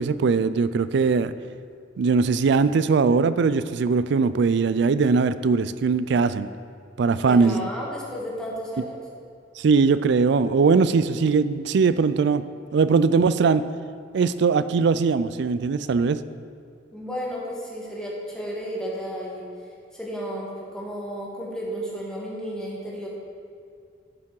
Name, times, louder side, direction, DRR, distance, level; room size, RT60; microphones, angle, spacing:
voice 1, 0.0-1.3 2.0-6.5 7.0-7.7 9.6-12.4 12.7-13.6 14.1-16.2, right 5 dB, 65° right, 14 dB, 0.4 m, -20 dB
voice 2, 7.3-9.0 16.9-19.4 19.9-23.1, equal, 5° left, -5 dB, 1.8 m, -33 dB
11.0 x 5.9 x 4.8 m, 2.3 s
head